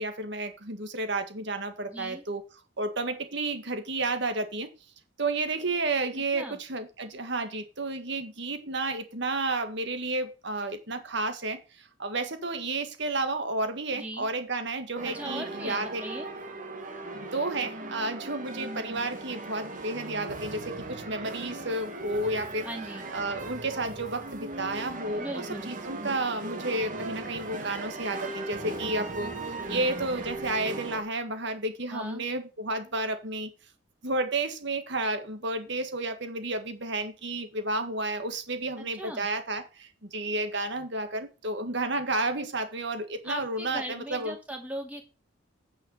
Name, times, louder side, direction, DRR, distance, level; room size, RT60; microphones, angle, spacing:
voice 1, 0.0-2.4 2.8-4.7 5.2-16.0 17.2-22.7 23.1-33.5 34.0-44.3, right 2 dB, 55° right, 1.7 m, -31 dB
voice 2, 1.9-2.2 6.3-6.6 13.9-14.3 15.0-16.3 22.6-23.1 25.2-25.7 31.9-32.2 38.8-39.3 43.2-45.0, right 1 dB, 5° right, 2.3 m, -39 dB
sound 1, 15.0-31.0, right 2 dB, 40° right, 1.7 m, -38 dB
9.2 x 5.8 x 5.5 m
head